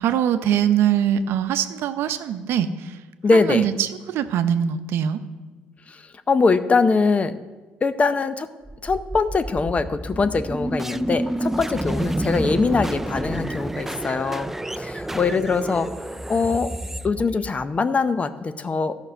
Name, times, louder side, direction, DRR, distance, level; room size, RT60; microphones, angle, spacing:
voice 1, 0.0-3.0 3.5-5.2, right 9 dB, 70° right, 10 dB, 0.7 m, -22 dB
voice 2, 3.2-3.7 5.9-7.4 7.8-8.5 8.8-15.9 16.3-16.7 17.0-19.0, left 4 dB, 30° left, 12 dB, 0.6 m, -22 dB
sound 1, 8.7-17.8, right 1 dB, 10° right, 0.3 m, -29 dB
12.5 x 6.1 x 5.5 m, 1.3 s
supercardioid pair, 75°, 4 cm